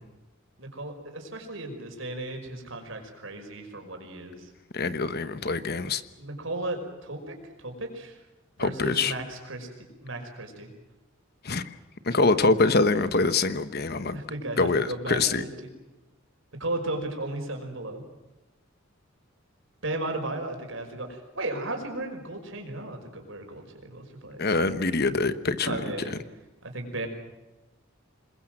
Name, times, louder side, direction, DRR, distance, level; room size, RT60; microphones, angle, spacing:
voice 1, 0.6-4.5 6.2-8.2 8.6-9.7 10.0-10.7 14.1-15.7 16.6-18.0 19.8-24.5 25.6-26.2 26.6-27.1, right 2 dB, 65° right, 4 dB, 5.5 m, -35 dB
voice 2, 4.7-6.0 8.6-9.1 11.4-11.6 12.0-14.2 14.6-15.4 24.4-25.8 26.1-26.2, left 3 dB, 50° left, 12 dB, 1.2 m, -24 dB
27.0 x 21.5 x 7.7 m, 1.1 s
head